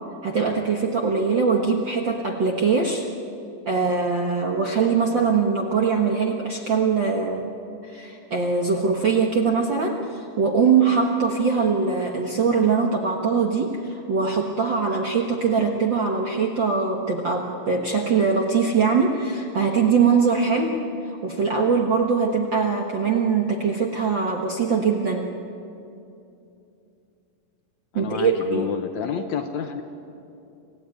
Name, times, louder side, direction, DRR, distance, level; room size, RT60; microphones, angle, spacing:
voice 1, 0.2-3.0 3.6-7.5 7.8-25.3 27.9-28.7, right 5 dB, 55° right, 1 dB, 1.3 m, -22 dB
voice 2, 27.9-29.8, left 8 dB, 70° left, 7 dB, 2.0 m, -29 dB
27.0 x 16.0 x 9.5 m, 2.7 s
omnidirectional pair, 4.0 m